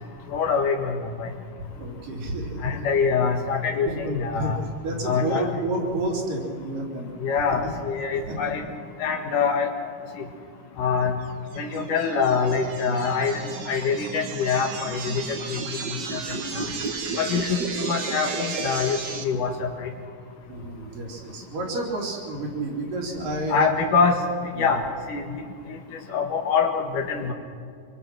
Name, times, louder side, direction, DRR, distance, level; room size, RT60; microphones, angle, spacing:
voice 1, 0.3-1.3 2.6-4.6 5.0-5.5 7.2-8.6 9.0-9.7 10.2-10.3 10.8-11.2 11.6-15.6 16.1-16.2 16.6-16.7 17.2-19.9 23.5-24.2 24.6-24.8 25.1-25.2 26.1-27.3, left 5 dB, 70° left, 2 dB, 3.0 m, -24 dB
voice 2, 1.6-2.8 3.8-7.1 7.6-7.7 8.3-8.7 17.2-17.5 20.5-23.9 24.5-24.8, right 2 dB, 75° right, -1 dB, 5.0 m, -30 dB
sound 1, 11.5-19.2, right 4 dB, 50° right, 1.2 m, -33 dB
25.5 x 23.5 x 6.1 m, 2.2 s
omnidirectional pair, 3.9 m